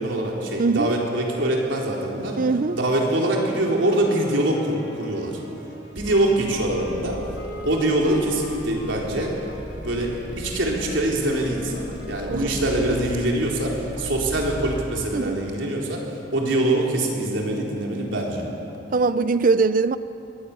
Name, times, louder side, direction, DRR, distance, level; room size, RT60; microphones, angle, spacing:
voice 1, 0.0-2.4 2.7-5.4 6.0-7.2 7.6-9.3 9.8-16.0 16.3-18.4, right 1 dB, 80° right, 4.0 m, -24 dB
voice 2, 0.6-0.9 2.4-2.8 12.2-12.5 15.1-15.4 18.9-20.0, right 4 dB, 45° right, 0.5 m, -21 dB
sound 1, 2.7-13.0, left 1 dB, 80° left, 6.8 m, -41 dB
sound 2, 6.0-14.9, equal, 5° right, 2.0 m, -38 dB
21.5 x 16.5 x 8.5 m
head